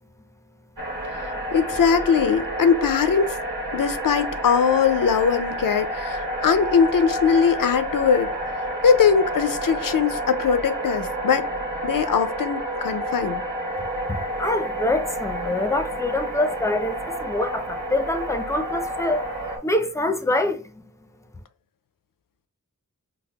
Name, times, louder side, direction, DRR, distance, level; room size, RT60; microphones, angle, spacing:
sound 1, 0.8-19.6, right 1 dB, 80° right, 1.3 m, -29 dB
voice 1, 1.1-3.4 3.7-11.5 11.8-13.4, left 6 dB, 75° left, 0.5 m, -21 dB
voice 2, 14.1-19.3 19.6-20.9, left 2 dB, 10° left, 0.4 m, -25 dB
5.3 x 2.0 x 2.2 m
wide cardioid pair, 50°, 33 cm